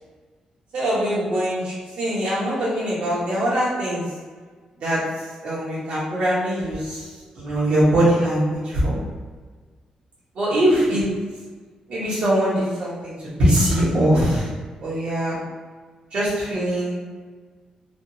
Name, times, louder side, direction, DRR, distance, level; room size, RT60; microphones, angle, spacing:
voice 1, 0.7-4.0 4.8-5.0 5.4-7.1 7.3-9.0 10.3-11.0 11.9-14.5 14.8-15.3 16.1-17.0, right 1 dB, 75° right, -9 dB, 1.1 m, -22 dB
3.3 x 2.0 x 2.7 m, 1.4 s
cardioid pair, 90°, 2 cm